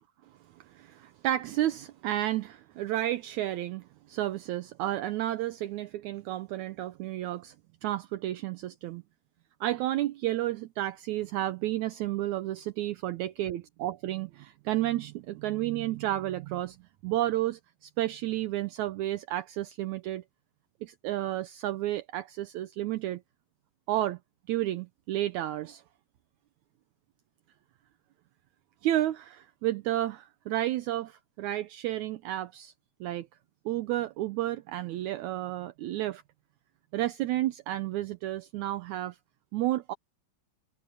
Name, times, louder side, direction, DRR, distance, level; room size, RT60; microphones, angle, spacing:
voice 1, 0.6-7.6 7.8-9.0 9.6-16.8 17.0-20.2 20.8-23.2 23.9-24.2 24.5-25.8 28.8-32.7 33.0-33.3 33.7-36.2 36.9-39.2 39.5-39.9, right 14 dB, 75° right, 1.9 m, -31 dB
omnidirectional pair, 3.8 m